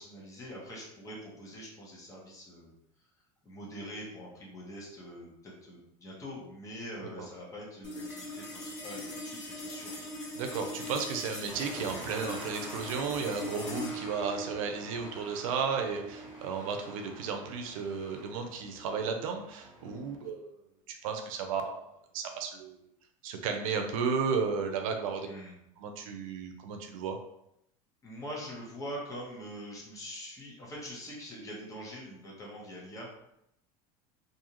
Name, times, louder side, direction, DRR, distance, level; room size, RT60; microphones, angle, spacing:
voice 1, 0.0-2.7 3.4-10.0 20.2-20.3 25.2-25.5 28.0-33.1, equal, 20° left, -4 dB, 1.0 m, -44 dB
sound 1, 7.8-18.4, left 1 dB, 65° left, 1.5 m, -42 dB
voice 2, 10.4-20.5 20.9-21.8 22.1-22.9 23.2-25.3 25.8-27.2, right 5 dB, 80° right, 5 dB, 0.5 m, -34 dB
sound 2, 11.5-20.2, right 1 dB, 5° right, 1.1 m, -48 dB
2.6 x 2.4 x 2.9 m, 0.79 s
supercardioid pair, 120°, 17 cm